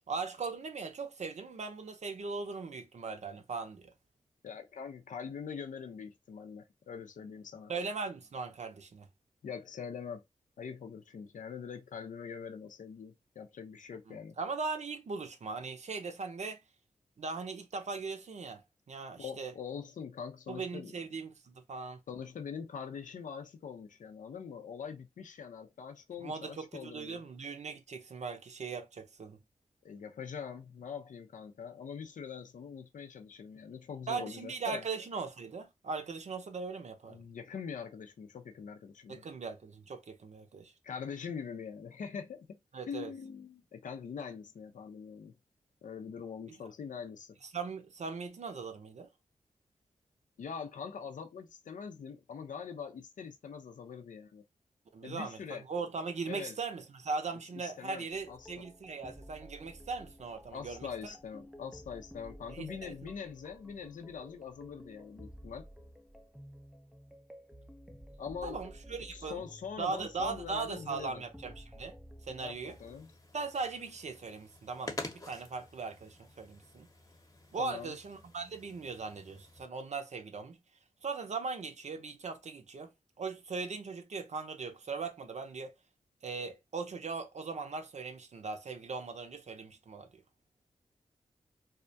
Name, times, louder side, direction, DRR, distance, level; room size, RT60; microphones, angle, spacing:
voice 1, 0.1-3.9 7.7-9.1 14.1-16.6 17.2-18.6 18.9-19.5 20.5-22.0 26.2-29.4 34.1-37.2 39.1-40.7 42.7-43.1 47.4-49.1 54.9-61.1 62.5-62.9 68.4-69.4 69.8-72.0 72.2-72.8 73.3-76.9 77.5-80.6 81.0-82.9 83.2-85.7 86.2-90.2, right 4 dB, 60° right, 0.6 m, -39 dB
voice 2, 4.4-7.7 9.4-10.2 10.6-14.4 19.2-20.9 22.1-27.2 29.8-34.8 37.1-39.2 40.8-42.6 42.8-45.3 45.8-47.4 50.4-54.4 55.0-55.6 56.3-56.6 57.5-58.5 60.5-65.6 68.2-68.6 69.0-71.2 72.4-73.1 77.6-78.0, left 6 dB, 75° left, 0.6 m, -43 dB
sound 1, 58.1-73.0, equal, ahead, 0.4 m, -53 dB
sound 2, 72.6-79.7, left 2 dB, 25° left, 0.8 m, -48 dB
2.3 x 2.1 x 2.6 m
cardioid pair, 45°, 14 cm